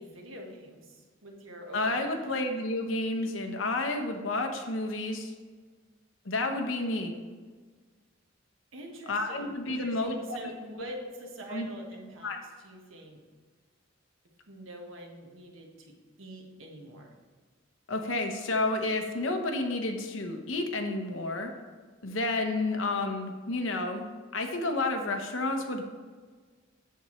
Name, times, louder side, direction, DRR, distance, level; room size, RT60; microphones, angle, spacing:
voice 1, 0.0-2.0 8.7-12.4 12.6-13.2 14.5-17.1, equal, 90° right, 1 dB, 1.4 m, -45 dB
voice 2, 1.7-5.3 6.2-7.1 9.1-10.5 11.5-11.7 12.2-12.4 17.9-21.5 22.0-24.0 24.3-25.8, left 2 dB, 80° left, 4 dB, 0.9 m, -30 dB
7.8 x 6.8 x 3.2 m, 1.5 s
head